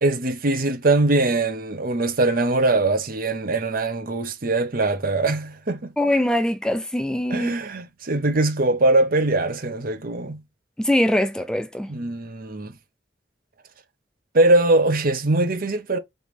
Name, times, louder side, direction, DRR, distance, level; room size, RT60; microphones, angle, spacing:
voice 1, 0.0-5.9 7.3-10.4 11.9-12.7 14.3-16.0, right 2 dB, 55° right, 0.8 m, -21 dB
voice 2, 6.0-7.5 10.8-11.9, left 1 dB, 5° left, 0.4 m, -22 dB
4.0 x 3.4 x 3.2 m
head